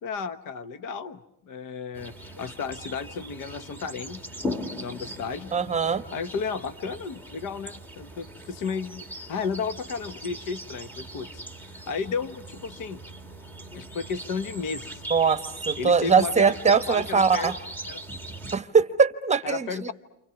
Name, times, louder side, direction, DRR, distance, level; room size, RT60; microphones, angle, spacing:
voice 1, 0.0-1.2 1.5-4.2 4.8-5.5 5.9-11.3 11.7-13.0 13.7-15.0 15.8-17.5 17.9-18.0 19.4-19.9, left 5 dB, 50° left, 12 dB, 1.3 m, -33 dB
sound 1, 1.9-18.6, right 1 dB, 5° left, 1.3 m, -39 dB
voice 2, 5.5-6.0 15.1-15.4 15.7-17.5 18.5-19.9, right 5 dB, 15° right, 10 dB, 1.1 m, -21 dB
29.5 x 27.5 x 6.0 m, 0.87 s
cardioid pair, 150°, 40 cm